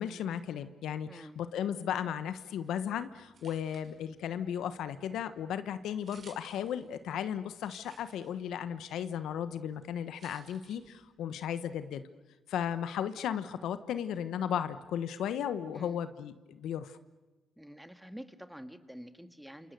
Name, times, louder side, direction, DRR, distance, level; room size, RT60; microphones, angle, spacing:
voice 1, 0.0-12.0 12.5-17.0, left 9 dB, 80° left, 11 dB, 1.1 m, -35 dB
voice 2, 1.1-1.4 15.7-16.0 17.6-19.7, equal, 5° right, 8 dB, 1.9 m, -48 dB
sound 1, 2.5-11.3, right 4 dB, 50° right, 5.8 m, -62 dB
28.0 x 27.5 x 6.9 m, 1.2 s
cardioid pair, 90°, 0 cm